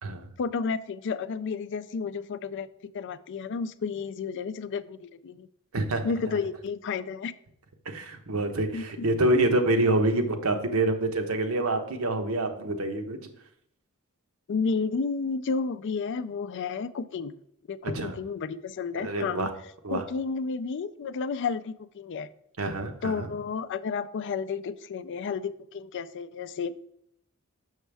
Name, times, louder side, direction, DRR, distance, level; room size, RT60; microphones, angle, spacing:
voice 1, 0.4-5.5 6.0-7.3 8.7-9.1 14.5-17.3 17.7-19.5 19.9-22.3 23.0-26.7, left 5 dB, 60° left, 14 dB, 0.4 m, -32 dB
voice 2, 7.9-13.2 17.9-18.2 19.0-19.5 19.8-20.0 22.6-23.3, right 2 dB, 75° right, 6 dB, 0.9 m, -26 dB
6.4 x 6.2 x 3.4 m, 0.73 s
head